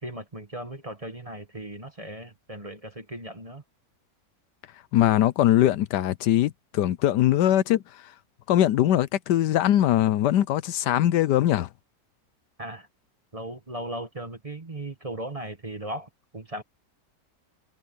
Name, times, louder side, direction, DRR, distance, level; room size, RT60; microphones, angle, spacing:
voice 1, 0.0-3.6 12.6-12.9 13.3-16.6, right 1 dB, 20° right, 1.3 m, -37 dB
voice 2, 4.9-7.8 8.5-11.7, left 12 dB, 75° left, 1.2 m, -21 dB
omnidirectional pair, 1.9 m